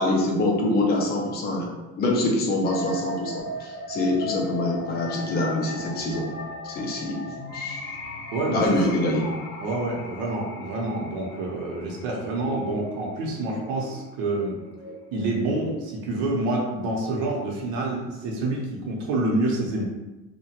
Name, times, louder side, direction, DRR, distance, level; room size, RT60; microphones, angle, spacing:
voice 1, 0.0-1.7 2.0-6.3 6.6-7.8 8.5-9.2, left 1 dB, 30° left, 0 dB, 0.5 m, -25 dB
sound 1, 2.6-16.6, left 2 dB, 65° left, 0.7 m, -38 dB
voice 2, 8.3-8.6 9.6-14.5 15.1-19.8, right 2 dB, 70° right, -1 dB, 0.7 m, -27 dB
2.8 x 2.2 x 2.8 m, 1.1 s
cardioid pair, 155°, 34 cm